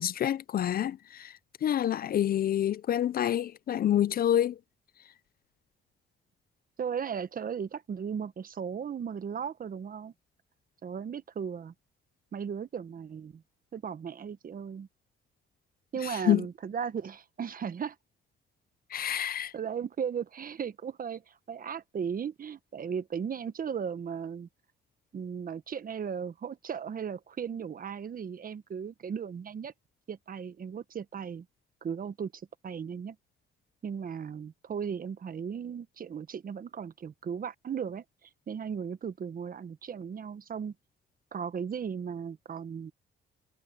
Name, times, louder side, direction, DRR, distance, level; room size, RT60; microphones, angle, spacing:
voice 1, 0.0-1.3 1.6-4.6 16.0-16.4 18.9-19.5, left 11 dB, 50° left, 0.4 m, -27 dB
voice 2, 6.8-10.1 10.8-11.7 12.3-13.4 13.7-14.9 15.9-17.9 19.1-24.5 25.1-29.7 30.1-31.4 31.8-33.2 33.8-38.0 38.5-40.7 41.3-42.9, right 7 dB, 45° right, 1.2 m, -36 dB
cardioid pair, 90°, 20 cm